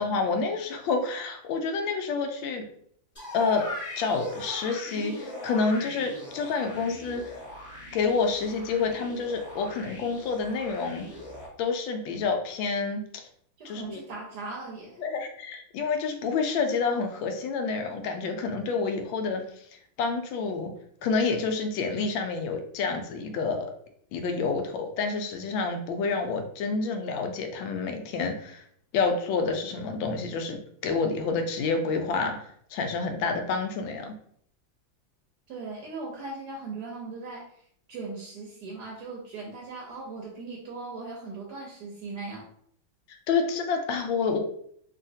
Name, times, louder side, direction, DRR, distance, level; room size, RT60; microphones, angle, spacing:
voice 1, 0.0-2.7 3.3-3.6 4.0-7.4 7.9-11.1 11.6-13.2 13.6-14.0 15.0-19.4 20.0-20.7 21.0-23.7 24.1-28.6 28.9-30.6 30.8-34.1 43.1-44.4, left 4 dB, 80° left, 5 dB, 1.3 m, -28 dB
sound 1, 3.2-11.5, left 1 dB, 20° left, 1.1 m, -39 dB
voice 2, 13.6-15.0 35.5-37.6 37.9-42.5, right 3 dB, 70° right, -1 dB, 1.0 m, -39 dB
3.1 x 2.7 x 2.6 m, 0.64 s
omnidirectional pair, 2.1 m